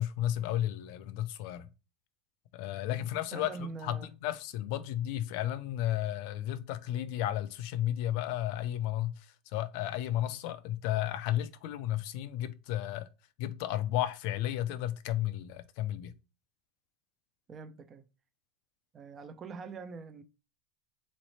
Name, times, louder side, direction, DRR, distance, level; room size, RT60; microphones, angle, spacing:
voice 1, 0.0-1.7 2.5-13.1 13.4-16.1, left 12 dB, 50° left, 0.5 m, -33 dB
voice 2, 3.0-4.1 17.5-18.0 18.9-20.2, right 4 dB, 20° right, 0.4 m, -44 dB
4.0 x 3.1 x 4.1 m
supercardioid pair, 180°, 0 cm